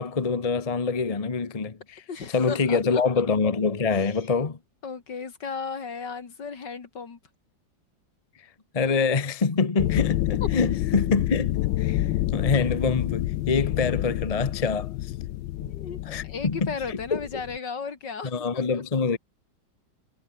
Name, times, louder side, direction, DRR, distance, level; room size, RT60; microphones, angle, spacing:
voice 1, 0.0-2.0 2.3-4.6 8.7-15.1 15.6-15.7 16.0-17.2 18.2-19.2, left 4 dB, 25° left, 0.9 m, -25 dB
voice 2, 2.1-3.0 3.9-4.3 4.8-7.2 15.7-18.8, left 5 dB, 65° left, 3.0 m, -35 dB
sound 1, 9.8-17.6, left 15 dB, 85° left, 1.4 m, -28 dB
omnidirectional pair, 2.1 m